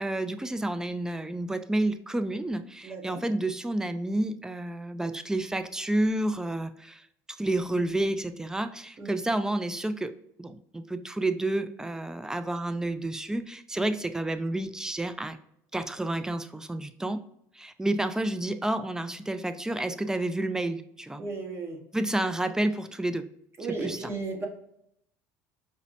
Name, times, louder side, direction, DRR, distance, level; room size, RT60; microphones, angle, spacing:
voice 1, 0.0-10.1 10.4-15.4 15.7-17.2 17.5-21.2 21.9-23.3 23.7-24.1, right 1 dB, 5° right, 10 dB, 0.3 m, -30 dB
voice 2, 2.8-3.2 9.0-9.2 13.8-13.9 21.2-21.8 23.6-24.5, right 3 dB, 30° right, 2 dB, 1.0 m, -35 dB
5.1 x 2.0 x 2.7 m, 0.75 s
hypercardioid pair, 80°, 8 cm